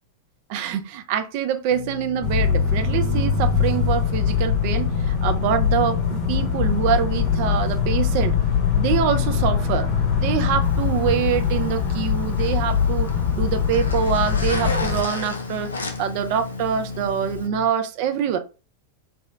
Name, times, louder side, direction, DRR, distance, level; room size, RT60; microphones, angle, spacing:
voice 1, 0.5-8.4 8.8-9.9 10.2-13.1 13.4-15.7 16.0-18.4, right 8 dB, 45° right, 0.4 m, -25 dB
sound 1, 1.7-17.7, left 5 dB, 85° right, 0.7 m, -35 dB
sound 2, 2.2-15.0, left 6 dB, 40° left, 0.7 m, -22 dB
Zipper (clothing), 10.6-17.5, left 2 dB, 75° left, 0.5 m, -35 dB
2.7 x 2.1 x 3.1 m
figure-of-eight pair, 90°, 0 cm